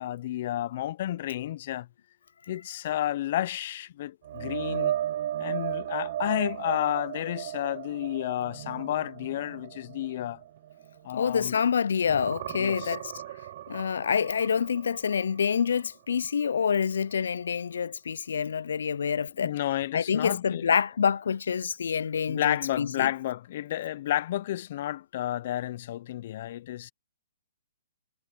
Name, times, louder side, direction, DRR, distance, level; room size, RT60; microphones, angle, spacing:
voice 1, 0.0-1.9 2.5-4.9 5.4-10.4 11.0-11.6 12.6-13.0 19.4-20.6 22.3-26.9, left 13 dB, 50° left, 0.7 m, -31 dB
sound 1, 4.2-11.7 12.0-15.9 16.2-16.5 19.8-19.9, right 12 dB, 45° right, 0.8 m, -35 dB
voice 2, 11.1-13.2 13.7-19.5 19.9-23.1, left 7 dB, 75° left, 0.4 m, -27 dB
hypercardioid pair, 150°, 0 cm